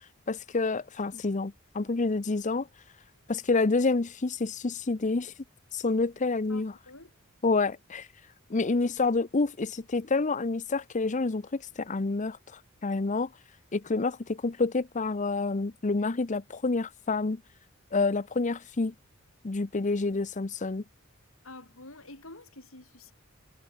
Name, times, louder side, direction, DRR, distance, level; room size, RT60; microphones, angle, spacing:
voice 1, 0.3-2.7 3.3-5.3 5.7-6.7 7.4-8.1 8.5-12.4 12.8-13.3 13.7-17.4 17.9-18.9 19.4-20.8, left 3 dB, 35° left, 0.7 m, -28 dB
voice 2, 6.5-7.1 21.4-23.1, left 2 dB, 70° left, 7.5 m, -48 dB
head